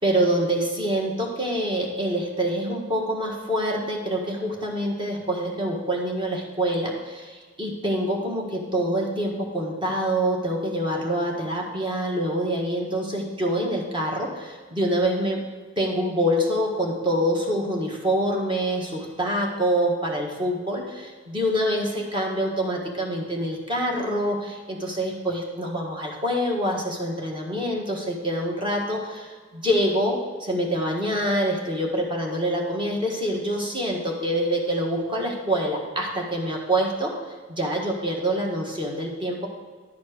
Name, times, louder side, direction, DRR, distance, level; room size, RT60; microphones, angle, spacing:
voice 1, 0.0-15.4 15.8-37.1 37.5-39.5, equal, 25° right, -1 dB, 1.5 m, -26 dB
11.0 x 4.3 x 6.5 m, 1.5 s
head